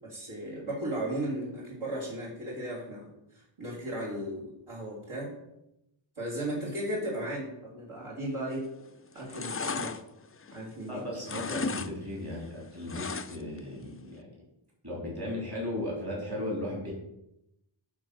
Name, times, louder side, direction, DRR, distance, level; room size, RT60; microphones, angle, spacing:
voice 1, 0.0-3.1 3.6-5.3 6.2-8.6 9.1-9.9 10.5-11.0, right 1 dB, 80° right, -7 dB, 3.5 m, -35 dB
sound 1, 8.5-8.8 9.1-10.9 11.2-11.9 12.2-13.6 13.9-14.0, left 4 dB, 30° left, 0.4 m, -35 dB
voice 2, 10.9-14.3 14.8-16.9, left 1 dB, 50° right, -4 dB, 3.6 m, -36 dB
9.4 x 3.8 x 6.7 m, 0.86 s
wide cardioid pair, 50°, 49 cm